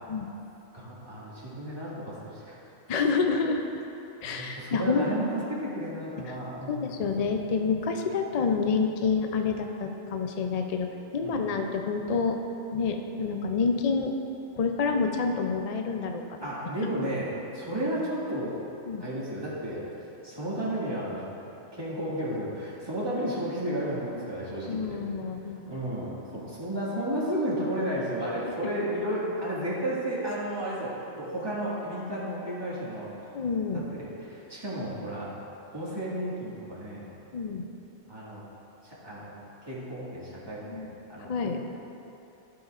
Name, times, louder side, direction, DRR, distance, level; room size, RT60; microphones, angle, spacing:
voice 1, 0.7-2.6 4.2-6.9 7.8-7.9 11.2-11.5 16.4-18.6 19.0-19.9 20.2-21.2 21.7-25.0 25.7-33.3 33.7-35.3 35.7-37.0 38.1-38.4 38.8-39.3 39.6-41.6, right 1 dB, 20° right, -8 dB, 2.0 m, -33 dB
voice 2, 2.9-3.8 4.2-5.1 6.7-12.4 12.7-14.1 14.5-16.4 18.9-19.0 24.7-25.6 33.3-33.8 37.3-37.7 40.6-40.9 41.2-41.6, left 5 dB, 50° left, 4 dB, 0.4 m, -28 dB
15.0 x 5.8 x 2.5 m, 3.0 s
omnidirectional pair, 1.2 m